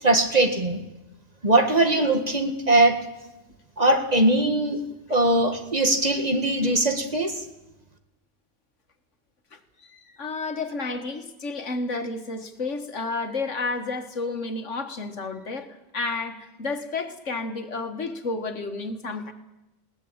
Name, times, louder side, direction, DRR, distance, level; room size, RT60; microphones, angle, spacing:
voice 1, 0.0-0.8 1.4-3.0 3.8-4.8 5.1-7.3, right 2 dB, 30° right, 6 dB, 2.0 m, -21 dB
voice 2, 9.5-19.3, left 3 dB, 70° left, 7 dB, 2.0 m, -31 dB
21.5 x 18.0 x 8.8 m, 0.97 s
omnidirectional pair, 1.3 m